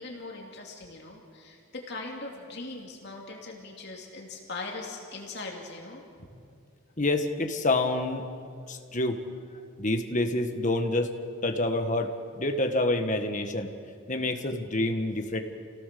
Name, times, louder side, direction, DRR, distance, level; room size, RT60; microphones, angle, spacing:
voice 1, 0.0-6.3 14.2-14.4, left 3 dB, 55° left, 0 dB, 2.8 m, -40 dB
voice 2, 7.0-8.3 8.7-9.2 9.8-11.1 11.4-13.7 14.1-15.4, left 2 dB, 35° left, 6 dB, 1.6 m, -27 dB
29.0 x 17.5 x 6.9 m, 2.3 s
head